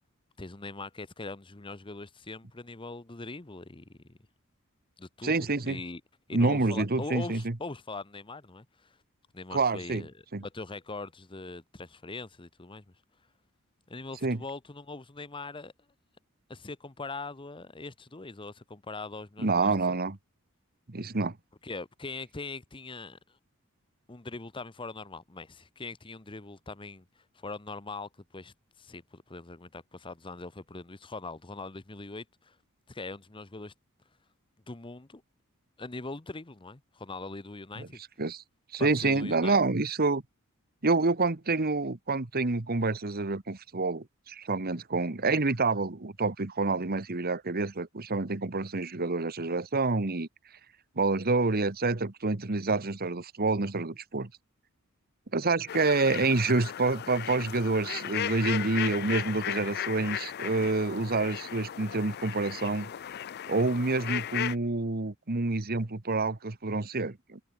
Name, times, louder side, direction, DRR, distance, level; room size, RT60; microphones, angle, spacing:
voice 1, 0.4-4.2 5.0-5.3 5.7-6.0 6.3-9.0 9.3-10.1 10.4-12.8 13.9-15.7 16.5-19.7 21.6-23.2 24.1-32.6 32.9-33.7 34.7-35.2 35.8-38.0 38.8-39.6, left 3 dB, 25° left, 1.0 m, -41 dB
voice 2, 5.2-5.8 6.3-7.5 9.5-10.0 10.3-10.4 14.2-14.4 19.4-20.2 20.9-21.4 37.8-37.9 38.2-38.4 38.7-40.2 40.8-50.3 51.0-54.3 55.3-62.9 63.5-67.4, right 3 dB, 45° right, 1.3 m, -28 dB
sound 1, 55.7-64.6, left 10 dB, 50° left, 0.4 m, -36 dB
head